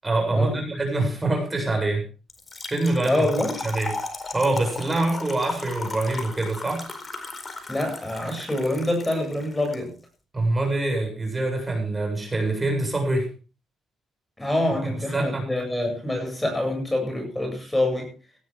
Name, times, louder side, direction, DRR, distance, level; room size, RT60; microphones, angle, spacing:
voice 1, 0.0-2.0 2.7-3.3 3.6-3.9 4.3-6.8 10.3-13.3 15.1-15.5, right 2 dB, 20° right, 3 dB, 7.9 m, -25 dB
Trickle dribble / Fill (with liquid), 2.3-9.8, left 3 dB, 25° left, 4.5 m, -36 dB
voice 2, 3.0-3.6 7.7-9.9 14.4-18.1, left 1 dB, 10° left, 3 dB, 7.8 m, -26 dB
18.5 x 13.5 x 3.8 m, 0.34 s
cardioid pair, 90°, 0 cm